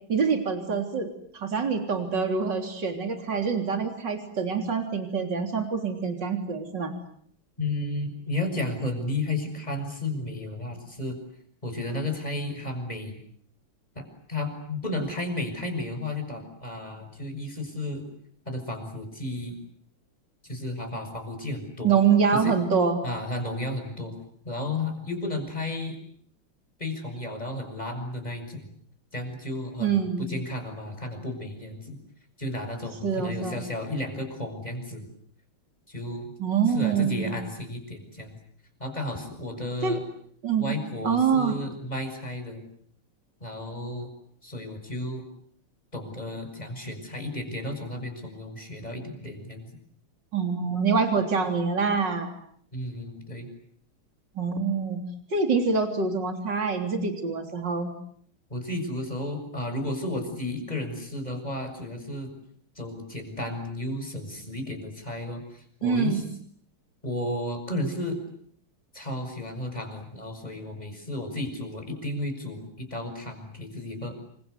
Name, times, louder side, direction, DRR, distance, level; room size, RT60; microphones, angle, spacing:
voice 1, 0.1-6.9 21.8-23.0 29.8-30.3 33.0-33.6 36.4-37.3 39.8-40.0 40.4-40.8 41.0-41.6 50.3-52.3 54.4-55.0 55.3-57.9 65.8-66.2, right 5 dB, 55° right, 5 dB, 4.1 m, -25 dB
voice 2, 7.6-11.2 11.6-13.2 13.9-18.0 18.4-19.6 20.5-21.9 22.4-22.5 23.0-24.1 24.4-26.0 26.8-28.7 29.1-32.0 32.4-35.1 35.9-36.3 36.7-38.4 38.8-40.0 40.6-42.6 43.4-44.1 44.4-45.2 45.9-49.7 52.7-53.5 58.5-62.3 62.7-66.2 67.0-68.2 68.9-74.1, left 1 dB, 20° left, 5 dB, 6.8 m, -33 dB
28.5 x 25.5 x 8.2 m, 0.63 s
omnidirectional pair, 2.3 m